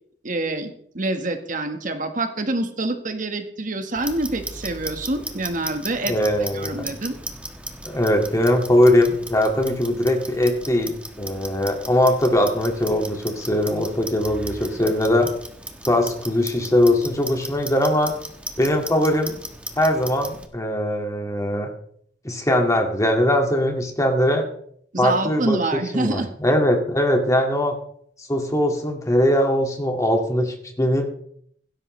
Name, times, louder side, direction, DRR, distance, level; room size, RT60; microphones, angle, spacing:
voice 1, 0.2-6.1 6.5-7.2 24.9-26.3, right 2 dB, 50° right, 6 dB, 1.5 m, -26 dB
Clock, 4.0-20.5, right 1 dB, 5° right, 1.3 m, -37 dB
voice 2, 6.1-6.9 7.8-15.3 15.9-18.1 18.6-19.4 19.8-21.7 22.2-24.5 25.0-27.8 28.2-31.1, left 1 dB, 20° left, 3 dB, 2.1 m, -21 dB
16.5 x 12.5 x 3.3 m, 0.63 s
head